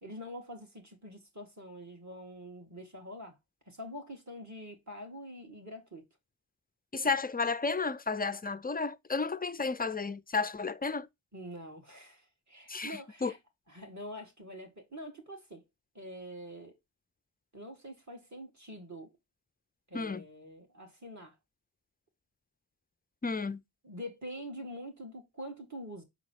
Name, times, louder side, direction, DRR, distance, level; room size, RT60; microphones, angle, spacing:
voice 1, 0.0-3.4 3.7-6.0 11.3-13.4 13.7-15.6 15.9-16.8 17.5-19.1 19.9-21.3 23.8-26.0, equal, 35° right, 2.4 m, -45 dB
voice 2, 6.9-11.1 12.7-13.3 19.9-20.2 23.2-23.6, left 4 dB, 20° left, 0.3 m, -32 dB
5.8 x 4.0 x 4.7 m
wide cardioid pair, 65°, 48 cm